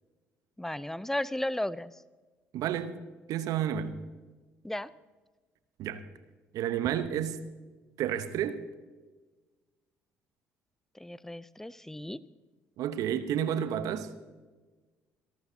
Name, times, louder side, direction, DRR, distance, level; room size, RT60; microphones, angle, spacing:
voice 1, 0.6-1.9 4.6-4.9 10.9-12.2, left 1 dB, 5° left, 0.6 m, -34 dB
voice 2, 2.5-2.9 3.3-3.9 5.8-6.0 6.5-7.4 8.0-8.6 12.8-14.1, right 10 dB, 60° right, 1.1 m, -30 dB
27.0 x 12.5 x 2.9 m
hypercardioid pair, 50°, 7 cm